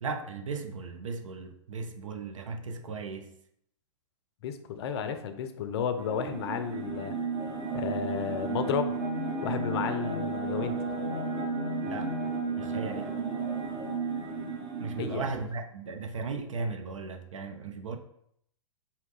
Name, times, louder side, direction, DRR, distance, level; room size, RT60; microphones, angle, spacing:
voice 1, 0.0-3.3 11.8-12.1 12.6-13.1 14.8-18.0, right 4 dB, 75° right, 0.6 m, -36 dB
voice 2, 4.4-7.2 7.7-9.0 9.4-10.8 15.0-15.3, left 7 dB, 50° left, 0.5 m, -32 dB
sound 1, 6.0-15.2, right 3 dB, 25° right, 0.7 m, -33 dB
4.5 x 2.2 x 3.7 m
figure-of-eight pair, 105°, 17 cm